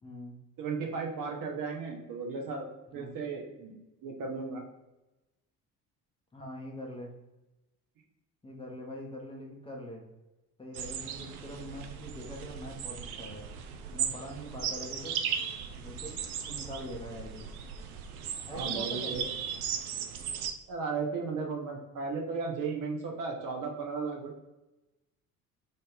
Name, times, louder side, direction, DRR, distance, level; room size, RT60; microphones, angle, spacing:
voice 1, 0.0-0.4 2.9-3.1 6.3-7.1 8.4-10.0 10.6-13.5 13.9-15.2 15.8-16.2 16.5-17.5 18.5-19.3, left 1 dB, 10° left, -1 dB, 0.8 m, -43 dB
voice 2, 0.6-2.7 2.9-3.7 4.0-4.6 18.5-19.2 20.7-24.4, right 4 dB, 45° right, 1 dB, 0.9 m, -35 dB
sound 1, 10.7-20.5, right 8 dB, 70° right, 0.6 m, -37 dB
3.8 x 2.6 x 3.5 m, 1.0 s
figure-of-eight pair, 50°, 46 cm